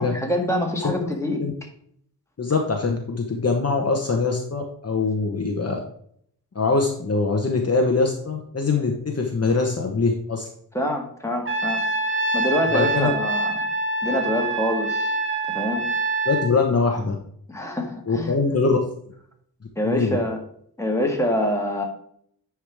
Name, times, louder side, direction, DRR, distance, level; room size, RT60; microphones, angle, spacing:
voice 1, 0.0-1.4 10.7-11.8 12.1-13.6 14.0-15.1 15.5-15.9 17.5-18.3 19.8-20.4 20.8-21.8, left 1 dB, 5° left, 0 dB, 1.8 m, -25 dB
voice 2, 2.4-5.8 6.5-10.5 12.7-13.1 16.2-17.2 18.1-18.8 19.8-20.2, left 4 dB, 40° left, 1 dB, 1.0 m, -23 dB
Trumpet, 11.5-16.5, right 2 dB, 30° right, 0.9 m, -25 dB
9.9 x 4.8 x 3.5 m, 0.66 s
wide cardioid pair, 125°, 39 cm